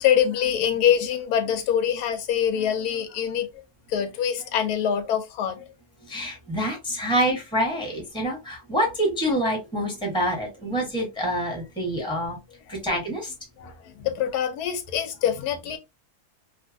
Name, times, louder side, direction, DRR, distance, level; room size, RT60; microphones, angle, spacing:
voice 1, 0.0-3.5 3.9-5.6 13.6-13.7 14.0-15.8, left 9 dB, 80° left, 1.1 m, -24 dB
voice 2, 6.1-12.4 12.7-13.3, equal, 5° left, 0.9 m, -26 dB
2.8 x 2.4 x 2.5 m
omnidirectional pair, 1.6 m